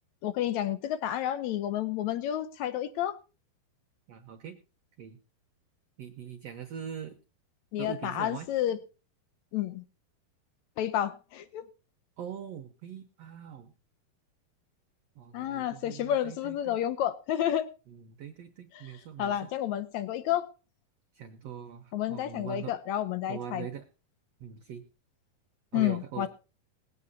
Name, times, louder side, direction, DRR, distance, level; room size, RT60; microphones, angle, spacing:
voice 1, 0.2-3.2 7.7-8.8 9.5-9.8 10.8-11.6 15.3-17.7 18.7-18.8 19.2-20.5 21.9-23.7 25.7-26.3, left 11 dB, 80° left, 14 dB, 1.6 m, -30 dB
voice 2, 4.1-4.6 5.0-5.2 6.0-7.2 7.8-8.5 12.2-13.7 15.1-16.8 17.9-19.5 21.1-22.7 23.3-23.9 24.4-24.8 25.7-26.3, right 8 dB, 75° right, 7 dB, 1.5 m, -42 dB
20.0 x 9.1 x 4.0 m, 0.33 s
omnidirectional pair, 4.3 m